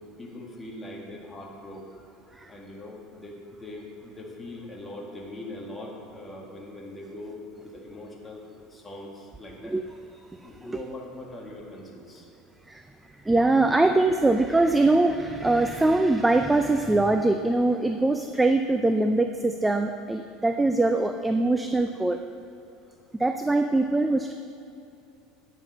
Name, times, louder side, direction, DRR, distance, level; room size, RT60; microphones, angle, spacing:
voice 1, 0.0-2.1 2.5-9.8 10.4-12.3, left 1 dB, 15° left, -2 dB, 1.9 m, -41 dB
voice 2, 13.2-22.2 23.2-24.3, right 2 dB, 10° right, 6 dB, 0.4 m, -22 dB
9.6 x 7.1 x 6.6 m, 2.7 s
supercardioid pair, 120°, 0 cm